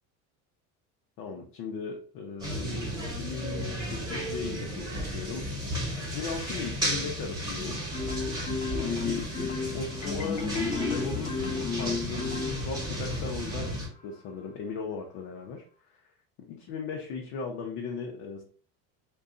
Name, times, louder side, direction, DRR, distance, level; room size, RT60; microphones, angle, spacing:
voice 1, 1.2-5.5 6.1-7.8 8.5-16.0 16.5-18.4, left 5 dB, 60° left, 0 dB, 0.7 m, -37 dB
sound 1, 2.4-13.9, equal, 10° right, 1.2 m, -34 dB
Marimba xylophone, 7.9-13.1, left 5 dB, 20° left, 0.4 m, -33 dB
2.6 x 2.3 x 3.7 m, 0.43 s
cardioid pair, 145°, 38 cm